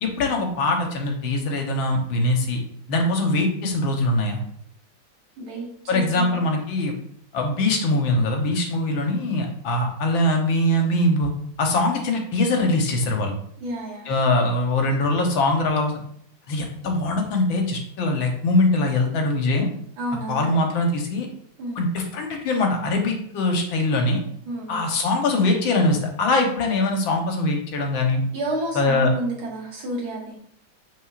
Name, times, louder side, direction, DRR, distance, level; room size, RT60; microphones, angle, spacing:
voice 1, 0.0-2.6 2.9-4.4 5.9-7.0 7.3-11.3 11.6-13.3 14.1-15.9 16.5-19.7 20.3-21.3 21.8-24.2 24.7-28.2 28.8-29.1, left 2 dB, 70° left, 2 dB, 1.7 m, -22 dB
voice 2, 5.4-6.4 13.6-14.1 20.0-20.6 21.6-21.8 24.5-24.9 28.3-30.4, right 1 dB, 80° right, -3 dB, 2.5 m, -30 dB
6.3 x 6.2 x 2.4 m, 0.65 s
omnidirectional pair, 2.3 m